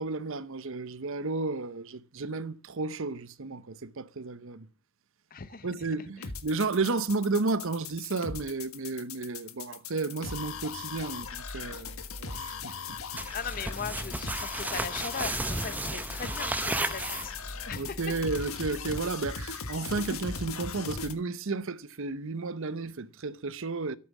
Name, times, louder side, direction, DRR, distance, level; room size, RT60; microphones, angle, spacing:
voice 1, 0.0-4.7 5.6-13.2 17.8-24.0, right 3 dB, 65° right, 0.8 m, -33 dB
voice 2, 5.3-5.9 6.2-6.3 13.3-18.0, left 6 dB, 40° left, 0.7 m, -39 dB
sound 1, 6.2-21.1, left 5 dB, 75° left, 1.5 m, -38 dB
sound 2, 13.2-17.6, right 2 dB, 10° right, 0.7 m, -34 dB
13.0 x 8.5 x 7.2 m
head